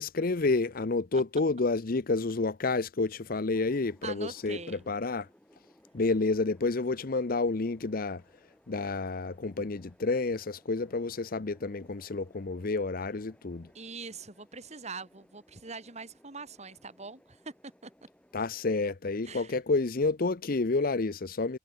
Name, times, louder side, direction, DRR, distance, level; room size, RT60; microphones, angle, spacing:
voice 1, 0.0-5.3 5.9-8.2 8.7-13.7 18.3-21.6, left 3 dB, 55° left, 0.7 m, -29 dB
sound 1, 3.5-18.8, equal, 5° left, 5.9 m, -62 dB
voice 2, 4.0-4.9 13.7-17.9 19.2-19.6, right 4 dB, 40° right, 3.5 m, -43 dB
head